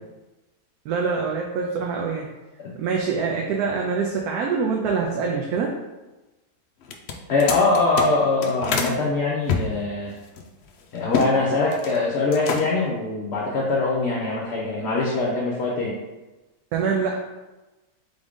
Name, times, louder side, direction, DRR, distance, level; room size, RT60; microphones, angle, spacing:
voice 1, 0.8-2.2 2.7-5.7 16.7-17.2, right 5 dB, 75° right, 0 dB, 1.1 m, -25 dB
sound 1, 6.8-9.0 9.5-11.3 11.6-12.0 12.3-12.9, left 5 dB, 90° left, 0.5 m, -28 dB
voice 2, 7.3-10.1 10.9-15.9, left 3 dB, 55° left, -3 dB, 0.8 m, -23 dB
3.8 x 3.7 x 3.6 m, 1.1 s
omnidirectional pair, 1.7 m